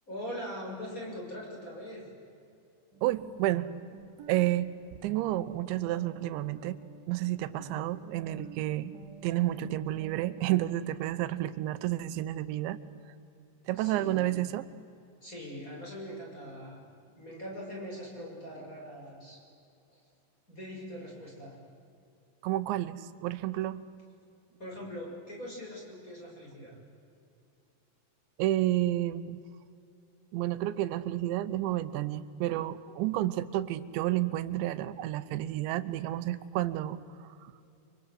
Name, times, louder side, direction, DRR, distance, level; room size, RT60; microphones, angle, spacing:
voice 1, 0.0-2.0 7.4-7.7 13.8-14.3 15.2-16.8 17.1-19.4 19.9-20.0 20.5-21.6 24.6-26.8, equal, 15° left, -2 dB, 6.7 m, -42 dB
sound 1, 2.9-10.7, right 7 dB, 45° right, 2.7 m, -50 dB
voice 2, 3.0-3.7 4.3-4.7 5.0-6.8 7.1-8.9 9.2-12.8 13.7-14.7 22.4-23.8 28.4-29.4 30.3-37.5, right 14 dB, 90° right, 13 dB, 3.2 m, -30 dB
30.0 x 24.5 x 7.9 m, 2.6 s
omnidirectional pair, 5.1 m